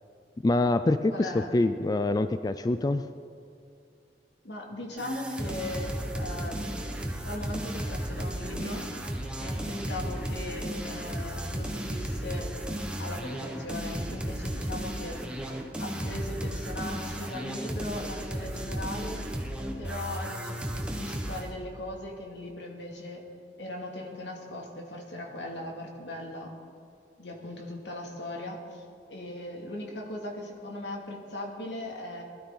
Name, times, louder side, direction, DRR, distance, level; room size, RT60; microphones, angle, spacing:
voice 1, 0.4-3.1, left 2 dB, 20° left, 11 dB, 0.3 m, -25 dB
voice 2, 1.1-1.6 4.4-8.9 9.4-12.5 13.0-15.2 15.8-19.3 19.8-23.2 23.6-26.5 27.2-28.8 29.1-32.2, left 1 dB, 80° left, 0 dB, 2.4 m, -39 dB
sound 1, 5.0-21.5, equal, 5° right, 1.2 m, -34 dB
21.0 x 12.5 x 3.9 m, 2.5 s
head